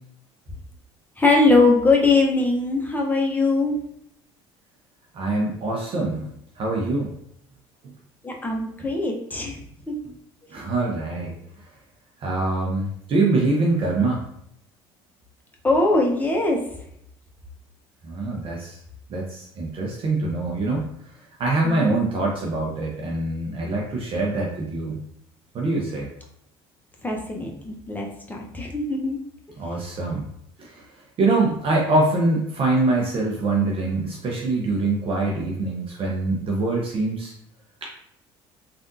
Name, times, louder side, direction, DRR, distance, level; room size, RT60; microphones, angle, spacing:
voice 1, 1.2-3.7 8.2-9.6 15.6-16.6 21.6-21.9 27.0-29.2, left 3 dB, 15° left, 0 dB, 0.8 m, -21 dB
voice 2, 5.1-6.3 6.6-7.1 7.8-7.9 10.1-10.2 10.5-11.3 12.2-14.2 18.0-18.8 19.1-20.9 21.4-25.0 25.5-26.1 29.6-30.3 30.6-30.8 31.2-37.3 37.8-37.9, right 2 dB, 45° right, -2 dB, 0.7 m, -24 dB
3.4 x 2.5 x 2.6 m, 0.73 s
supercardioid pair, 80°, 12 cm